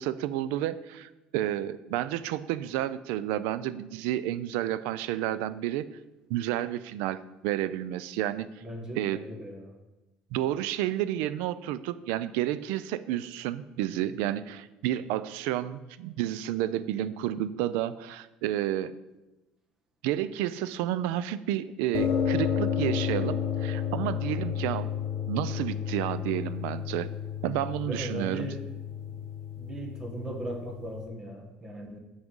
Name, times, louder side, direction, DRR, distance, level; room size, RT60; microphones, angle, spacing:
voice 1, 0.0-5.9 6.3-8.5 8.9-9.2 10.3-18.9 20.0-24.9 25.3-27.1 27.4-28.5, right 12 dB, 90° right, 15 dB, 0.4 m, -31 dB
voice 2, 8.6-9.7 27.8-28.6 29.1-29.2 29.6-32.0, right 1 dB, 20° right, 2 dB, 1.2 m, -38 dB
sound 1, 21.9-31.1, left 8 dB, 55° left, 1.0 m, -32 dB
6.5 x 6.0 x 5.3 m, 1.1 s
cardioid pair, 160°, 3 cm